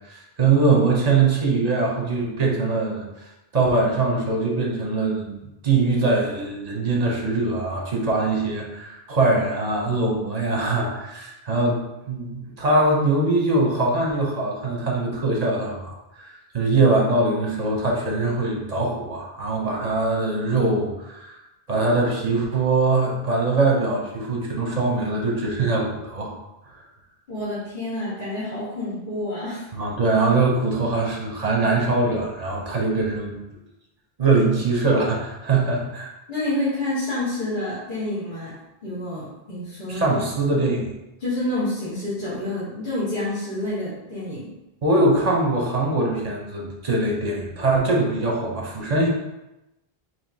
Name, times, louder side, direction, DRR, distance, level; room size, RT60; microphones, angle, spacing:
voice 1, 0.0-3.0 3.5-11.8 12.1-21.4 21.7-26.3 29.7-33.4 34.2-36.1 39.9-40.9 44.8-49.1, right 3 dB, 45° right, -1 dB, 0.8 m, -22 dB
voice 2, 27.3-29.7 36.3-38.5 38.8-40.2 41.2-44.5, left 1 dB, 50° left, -13 dB, 1.8 m, -28 dB
4.8 x 3.0 x 2.7 m, 0.94 s
omnidirectional pair, 1.0 m